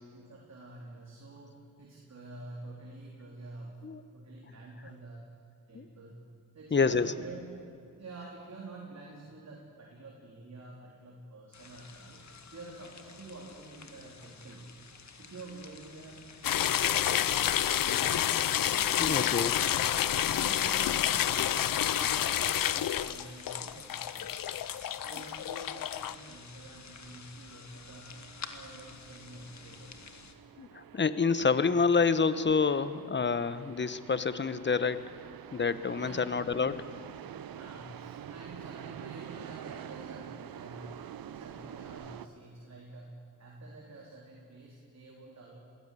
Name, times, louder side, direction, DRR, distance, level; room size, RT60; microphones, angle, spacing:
voice 1, 0.1-3.8 4.1-5.2 5.7-6.2 6.5-7.5 7.9-12.2 12.5-14.7 15.2-18.3 20.4-21.7 21.9-24.3 25.0-28.1 28.5-30.1 35.9-36.9 37.5-41.0 41.3-45.6, right 2 dB, 50° right, -2 dB, 4.0 m, -48 dB
voice 2, 6.7-7.1 19.0-19.6 30.6-35.0 35.5-36.8, left 5 dB, 30° left, 14 dB, 1.1 m, -28 dB
sound 1, 11.5-30.3, left 5 dB, 50° left, 2.1 m, -51 dB
sound 2, 16.4-26.2, left 11 dB, 70° left, 0.8 m, -29 dB
sound 3, 28.1-42.3, right 9 dB, 75° right, 0.9 m, -47 dB
21.5 x 16.5 x 8.5 m, 2.6 s
cardioid pair, 70°, 35 cm